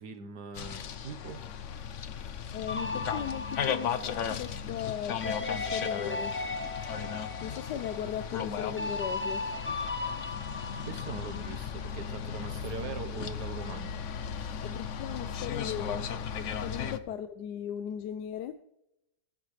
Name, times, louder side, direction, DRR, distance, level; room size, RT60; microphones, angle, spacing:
voice 1, 0.0-1.4 10.2-10.3 10.9-14.0, right 4 dB, 85° right, 7 dB, 1.7 m, -41 dB
sound 1, 0.5-17.0, left 7 dB, 55° left, 1.0 m, -36 dB
voice 2, 2.5-6.3 7.4-9.5 14.6-16.0 16.4-18.5, left 9 dB, 85° left, 10 dB, 1.3 m, -37 dB
sound 2, 2.7-12.1, left 3 dB, 10° left, 0.7 m, -37 dB
20.5 x 9.8 x 3.3 m, 0.84 s
omnidirectional pair, 1.7 m